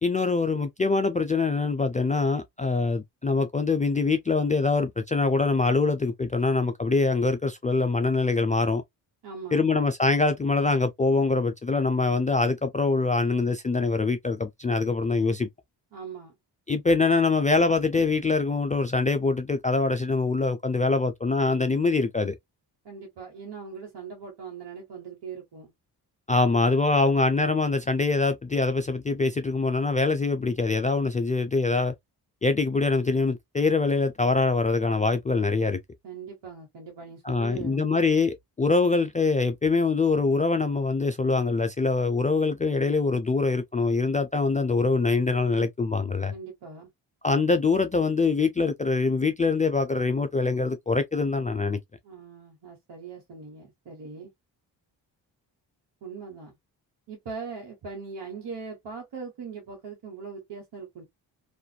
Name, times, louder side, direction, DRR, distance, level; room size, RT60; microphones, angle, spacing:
voice 1, 0.0-8.8 9.5-15.5 16.7-22.4 26.3-31.9 32.4-35.8 37.2-46.3 47.2-51.8, left 3 dB, 20° left, 0.3 m, -24 dB
voice 2, 9.2-9.6 15.9-16.4 22.8-25.7 36.0-37.9 46.3-46.9 52.0-54.3 56.0-56.6 57.1-61.0, right 5 dB, 65° right, 1.2 m, -40 dB
2.5 x 2.4 x 2.2 m
supercardioid pair, 55°, 45 cm